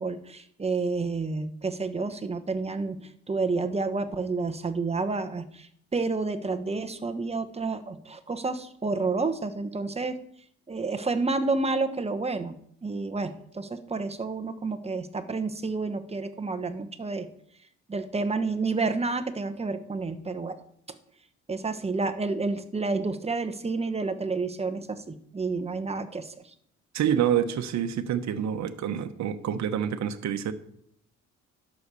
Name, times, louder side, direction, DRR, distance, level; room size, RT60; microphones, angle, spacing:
voice 1, 0.0-10.2 10.7-17.3 17.9-20.6 21.5-26.4, right 3 dB, 20° right, 1.1 m, -30 dB
voice 2, 26.9-30.5, right 9 dB, 65° right, 1.0 m, -27 dB
11.0 x 6.4 x 6.8 m
cardioid pair, 90°, 30 cm